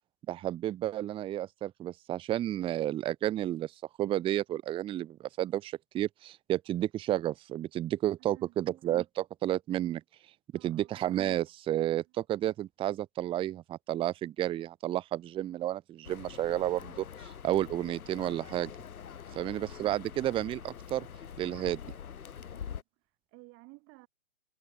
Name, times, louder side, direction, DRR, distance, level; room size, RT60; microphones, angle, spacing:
voice 1, 0.3-3.7 4.0-10.0 10.6-18.7 19.4-21.1 21.4-21.8, right 13 dB, 15° right, 0.9 m, -31 dB
voice 2, 8.2-8.6 10.5-11.0 12.0-12.1 19.3-19.6 22.5-24.1, right 26 dB, 30° right, 5.9 m, -56 dB
sound 1, 16.0-22.8, left 8 dB, 90° left, 1.7 m, -45 dB
hypercardioid pair, 145°, 42 cm